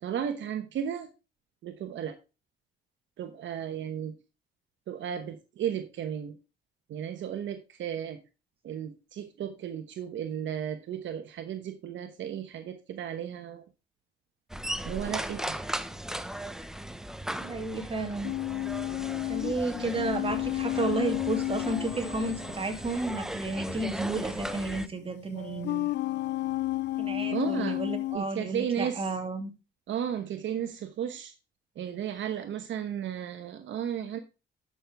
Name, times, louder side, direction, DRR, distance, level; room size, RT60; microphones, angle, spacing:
voice 1, 0.0-1.1 1.6-2.2 3.2-4.1 4.9-6.4 6.9-8.2 8.6-13.6 14.8-15.6 27.3-27.8 28.1-29.1 29.9-31.3 31.8-34.2, right 9 dB, 70° right, 8 dB, 1.0 m, -34 dB
sound 1, 14.5-24.9, right 1 dB, 5° right, 0.7 m, -37 dB
voice 2, 17.4-18.3 19.3-26.0 27.0-29.5, right 2 dB, 30° right, 3 dB, 2.5 m, -32 dB
sound 2, 18.2-23.1 24.4-24.5 25.3-28.2, left 16 dB, 60° left, 0.4 m, -32 dB
11.0 x 6.3 x 3.4 m, 0.30 s
cardioid pair, 90°, 20 cm